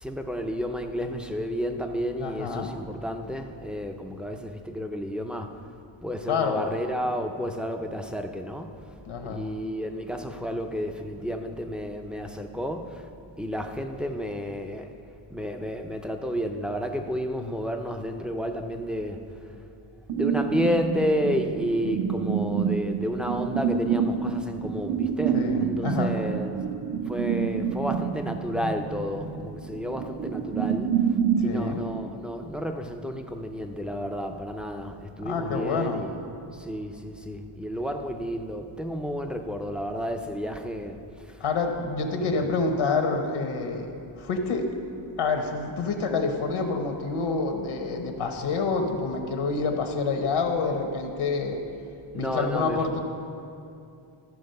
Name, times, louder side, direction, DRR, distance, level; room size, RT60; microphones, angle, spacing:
voice 1, 0.0-5.5 6.0-8.7 9.2-13.1 13.4-14.9 15.3-19.2 20.1-26.6 27.1-30.9 31.4-36.2 36.5-41.0 41.4-41.5 42.1-42.5 52.1-52.8, equal, ahead, 5 dB, 0.4 m, -31 dB
voice 2, 2.2-2.7 6.3-6.7 9.1-9.4 25.3-26.1 31.4-31.8 35.2-36.0 41.4-43.9 44.2-44.7 45.2-51.6 52.1-53.0, left 4 dB, 75° left, 4 dB, 1.0 m, -27 dB
sound 1, 20.1-31.5, right 7 dB, 65° right, 0.8 m, -27 dB
13.0 x 4.8 x 6.5 m, 2.6 s
wide cardioid pair, 140°, 49 cm